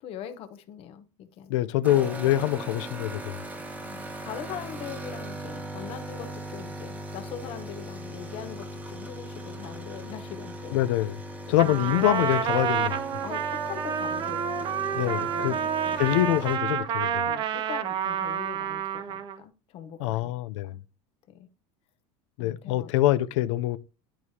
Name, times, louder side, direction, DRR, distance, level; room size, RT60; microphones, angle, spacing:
voice 1, 0.0-1.6 3.8-10.8 11.5-11.7 13.2-16.0 17.3-20.8 21.3-21.5 22.4-22.9, left 9 dB, 40° left, 0.8 m, -42 dB
voice 2, 1.5-3.4 10.7-11.2 11.5-13.1 15.0-15.5 16.0-17.3 20.0-20.8 22.4-23.8, left 14 dB, 80° left, 0.5 m, -25 dB
sound 1, 1.8-16.6, right 1 dB, 10° right, 1.0 m, -39 dB
Trumpet, 11.6-19.4, right 8 dB, 30° right, 0.5 m, -29 dB
10.5 x 4.7 x 2.8 m
cardioid pair, 160°, 15 cm